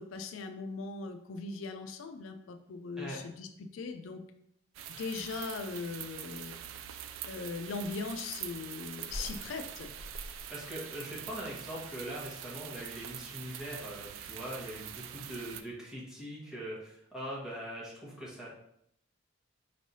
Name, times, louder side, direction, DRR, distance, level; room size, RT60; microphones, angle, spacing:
voice 1, 0.0-4.2 4.9-6.6 7.2-9.9, left 4 dB, 80° left, 6 dB, 0.4 m, -39 dB
sound 1, 4.7-15.6, right 10 dB, 75° right, 0.3 m, -44 dB
sound 2, 8.2-13.6, equal, 25° left, 0.8 m, -48 dB
voice 2, 10.5-18.5, equal, 5° right, -7 dB, 1.2 m, -42 dB
4.4 x 3.2 x 2.7 m, 0.74 s
head